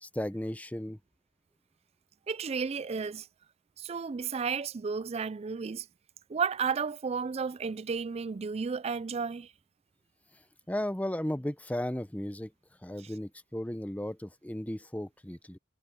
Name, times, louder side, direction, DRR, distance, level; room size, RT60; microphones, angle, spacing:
voice 1, 0.0-1.0 10.7-12.5 12.8-15.6, left 1 dB, 10° left, 0.7 m, -35 dB
voice 2, 2.3-3.3 3.8-5.9 6.3-9.5, right 5 dB, 35° right, 0.4 m, -33 dB
head